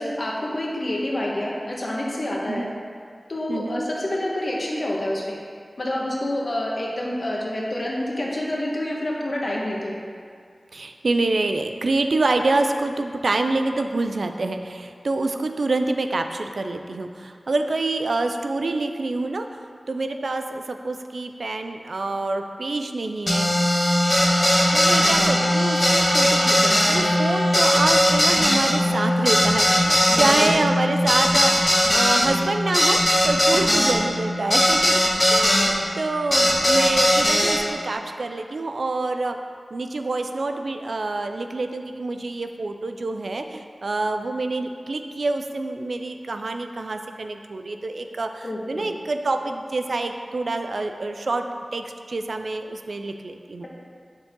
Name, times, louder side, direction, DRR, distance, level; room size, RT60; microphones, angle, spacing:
voice 1, 0.0-2.7 3.3-5.4 5.8-10.0 30.1-30.5 33.5-33.6 48.4-48.9, left 1 dB, 55° left, -3 dB, 1.4 m, -28 dB
voice 2, 3.5-3.8 10.7-19.5 19.9-23.5 24.7-31.5 31.9-39.3 39.7-51.4 51.7-53.7, right 2 dB, 75° right, 6 dB, 0.5 m, -26 dB
sound 1, 23.3-35.7 36.3-37.6, equal, 25° left, 1.6 m, -19 dB
7.2 x 6.8 x 3.7 m, 2.2 s
cardioid pair, 45°, 0 cm